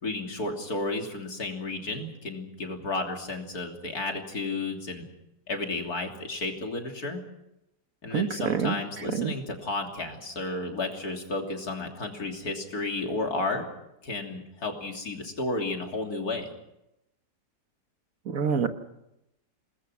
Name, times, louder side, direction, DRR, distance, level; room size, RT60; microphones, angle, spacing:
voice 1, 0.0-5.0 5.5-7.2 8.0-13.7 14.0-16.5, left 2 dB, 65° left, 2 dB, 3.6 m, -32 dB
voice 2, 8.1-8.8 9.1-9.3 18.3-18.7, right 7 dB, 55° right, 8 dB, 1.6 m, -26 dB
28.5 x 20.0 x 6.2 m, 0.86 s
omnidirectional pair, 1.8 m